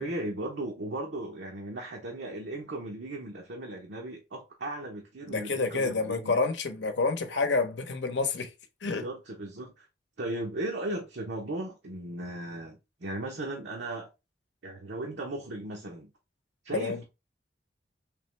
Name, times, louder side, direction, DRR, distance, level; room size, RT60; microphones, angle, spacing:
voice 1, 0.0-6.4 8.8-9.9 10.2-14.1 14.6-16.1 16.6-17.0, right 1 dB, 85° right, 0.8 m, -37 dB
voice 2, 5.3-8.5 8.8-9.0 16.7-17.0, left 3 dB, 85° left, 0.8 m, -28 dB
3.5 x 3.0 x 3.2 m
head